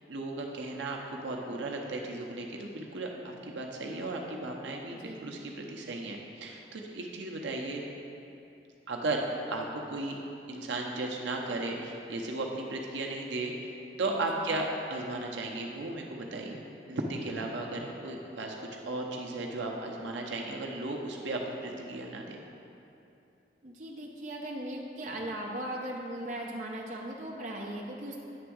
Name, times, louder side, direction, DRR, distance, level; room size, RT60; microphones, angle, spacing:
voice 1, 0.1-7.8 8.9-10.2 10.5-16.6 16.9-22.4, right 2 dB, 85° right, 0 dB, 0.7 m, -35 dB
voice 2, 4.9-5.3 14.3-14.5 23.6-28.2, right 1 dB, 40° right, -2 dB, 0.8 m, -38 dB
8.7 x 3.4 x 6.3 m, 2.8 s
head